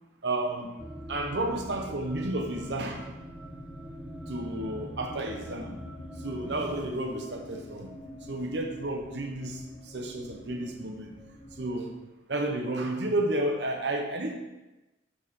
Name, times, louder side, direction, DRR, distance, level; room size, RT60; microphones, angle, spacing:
voice 1, 0.2-0.8 1.1-3.0 4.3-5.8 6.2-7.9 8.3-9.6 9.9-11.1 11.6-11.9 12.3-14.3, right 1 dB, 65° right, 3 dB, 0.9 m, -31 dB
sound 1, 0.8-6.9, equal, 5° right, 0.3 m, -44 dB
sound 2, 0.9-11.7, equal, 40° left, 2.3 m, -47 dB
12.0 x 4.2 x 3.7 m, 1.1 s
head